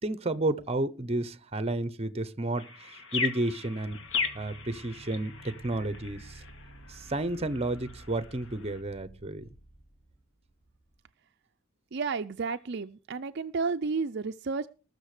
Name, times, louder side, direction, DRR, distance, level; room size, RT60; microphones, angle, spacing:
voice 1, 0.0-4.0 4.3-6.4 6.9-9.5, right 2 dB, 30° right, 0.8 m, -32 dB
sound 1, 2.6-8.8, left 5 dB, 65° left, 2.0 m, -38 dB
sound 2, 3.8-11.0, right 2 dB, 50° left, 2.7 m, -52 dB
voice 2, 11.9-14.7, right 4 dB, 55° right, 0.5 m, -32 dB
20.0 x 6.7 x 5.0 m
head